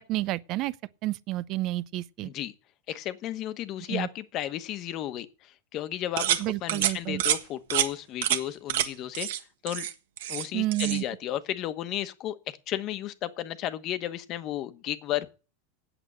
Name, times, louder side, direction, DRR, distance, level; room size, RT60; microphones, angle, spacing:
voice 1, 0.1-0.7 1.0-2.3 3.9-4.1 6.4-7.2 10.5-11.0, right 17 dB, 45° right, 0.5 m, -30 dB
voice 2, 2.2-2.5 2.9-9.3 9.6-9.9 10.3-12.4 12.7-15.4, left 12 dB, 40° left, 1.1 m, -33 dB
sound 1, 6.2-6.4 6.7-6.9 7.2-7.4 7.7-7.9 8.2-8.4 8.7-8.9 9.1-9.4 9.7-10.5 10.7-11.0, right 12 dB, 75° right, 1.4 m, -27 dB
8.8 x 8.0 x 8.1 m
supercardioid pair, 140°, 0 cm